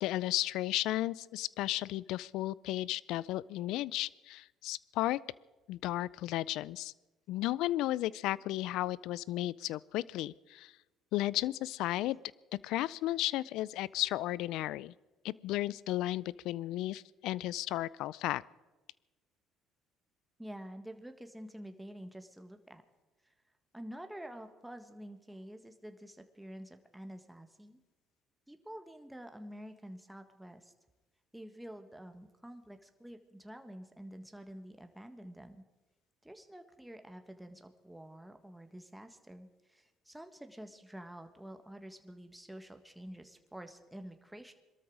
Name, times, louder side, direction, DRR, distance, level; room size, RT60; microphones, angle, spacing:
voice 1, 0.0-5.2 5.7-6.9 7.3-10.7 11.1-12.2 12.6-14.9 15.2-18.4, left 15 dB, 75° left, 22 dB, 0.4 m, -34 dB
voice 2, 20.4-22.8 23.2-23.3 23.7-27.8 28.5-30.7 31.3-35.6 36.2-44.5, equal, 5° right, 6 dB, 1.7 m, -48 dB
22.5 x 13.0 x 4.9 m, 1.1 s
hypercardioid pair, 65°, 0 cm